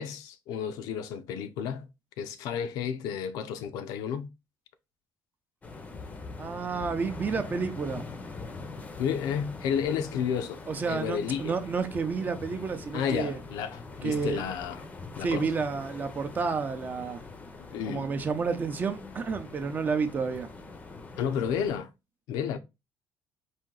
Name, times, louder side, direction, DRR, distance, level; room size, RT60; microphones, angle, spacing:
voice 1, 0.0-1.9 2.2-4.3 9.0-11.5 12.9-14.8 15.2-15.5 17.7-18.0 21.2-21.9 22.3-22.6, left 7 dB, 90° left, 0.6 m, -31 dB
sound 1, 5.6-21.8, left 3 dB, 25° left, 0.6 m, -43 dB
voice 2, 6.4-8.0 10.7-13.4 14.0-14.4 15.2-17.2 17.9-20.5, right 5 dB, 30° right, 0.6 m, -30 dB
4.3 x 2.7 x 3.8 m
cardioid pair, 140°, 6 cm